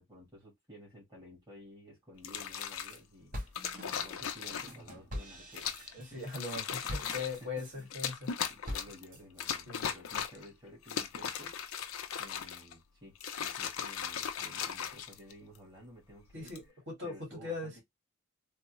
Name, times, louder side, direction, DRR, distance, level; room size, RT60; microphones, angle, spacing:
voice 1, 0.0-3.3 3.9-6.3 6.8-7.9 8.5-11.6 12.2-16.6 17.0-17.8, equal, 20° right, 1.5 m, -53 dB
sound 1, 2.2-3.0 3.5-4.9 5.5-5.9 6.3-7.4 7.9-9.0 9.4-10.5 10.8-12.7 13.1-15.6 16.3-16.6, left 8 dB, 85° left, 0.5 m, -38 dB
sound 2, 2.7-3.0 3.3-7.8 8.2-9.2, left 1 dB, 40° right, 1.0 m, -44 dB
voice 2, 5.9-8.3 9.7-9.9 16.3-17.7, left 3 dB, 55° right, 2.0 m, -40 dB
3.4 x 2.0 x 3.0 m
head